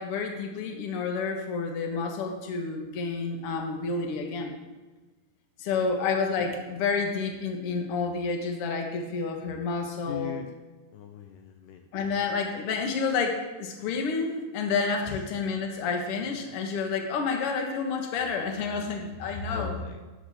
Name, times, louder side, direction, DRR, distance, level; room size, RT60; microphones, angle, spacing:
voice 1, 0.0-4.5 5.6-10.4 11.9-19.8, left 4 dB, 60° left, 3 dB, 1.6 m, -29 dB
voice 2, 10.1-10.5 10.9-11.9 15.0-15.2 16.4-16.5 19.5-20.0, left 9 dB, 90° left, 6 dB, 1.9 m, -40 dB
12.5 x 10.5 x 3.6 m, 1.2 s
omnidirectional pair, 4.5 m